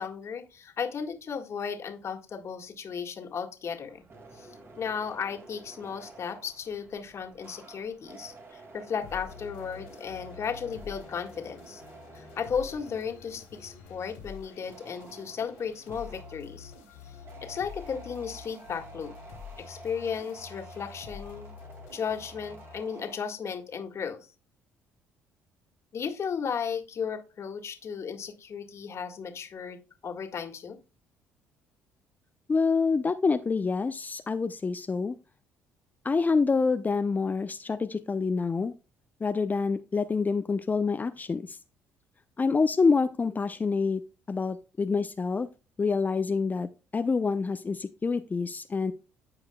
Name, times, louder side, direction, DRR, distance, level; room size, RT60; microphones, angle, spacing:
voice 1, 0.0-4.0 4.3-11.8 12.1-16.7 17.0-19.1 19.6-21.5 21.9-24.2 25.9-30.8, left 6 dB, 50° left, 5 dB, 1.9 m, -35 dB
sound 1, 3.9-23.2, right 3 dB, 40° right, 2.2 m, -51 dB
sound 2, 9.0-23.3, left 7 dB, 85° left, 2.8 m, -48 dB
voice 2, 32.5-35.1 36.0-38.7 39.2-41.6 42.4-44.0 44.3-45.5 45.8-48.9, left 4 dB, 30° left, 10 dB, 0.6 m, -27 dB
13.5 x 4.9 x 2.3 m, 0.31 s
hypercardioid pair, 60°, 6 cm